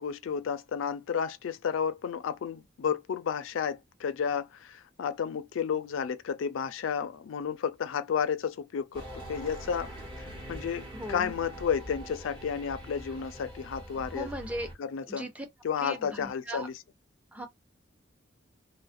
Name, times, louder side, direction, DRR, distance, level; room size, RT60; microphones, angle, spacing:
voice 1, 0.0-9.9 10.5-10.8 11.1-14.3 14.8-15.3 15.6-16.7, left 7 dB, 80° left, 0.4 m, -32 dB
sound 1, 8.9-14.7, right 1 dB, 30° right, 1.1 m, -43 dB
voice 2, 10.9-11.3 14.1-14.7 15.1-15.5 15.8-16.7 17.3-17.5, equal, 5° right, 0.6 m, -38 dB
2.3 x 2.1 x 2.5 m
head